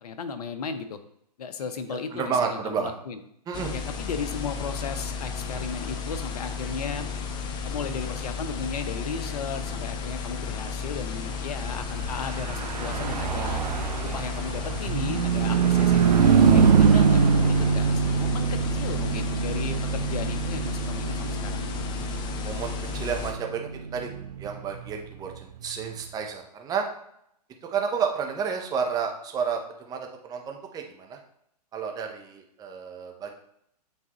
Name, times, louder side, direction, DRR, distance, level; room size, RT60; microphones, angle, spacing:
voice 1, 0.0-1.0 1.4-3.2 3.7-7.1 7.6-13.6 14.1-21.7, left 5 dB, 65° left, 9 dB, 0.9 m, -35 dB
voice 2, 1.9-2.9 3.5-3.7 22.4-24.1 24.4-26.9 27.6-31.2 31.7-33.3, right 6 dB, 15° right, 3 dB, 0.9 m, -31 dB
sound 1, 3.5-23.3, left 5 dB, 20° left, 0.6 m, -33 dB
Car passing by / Truck, 12.1-25.8, right 6 dB, 75° right, 0.6 m, -24 dB
8.5 x 3.8 x 3.0 m, 0.72 s
hypercardioid pair, 125°, 21 cm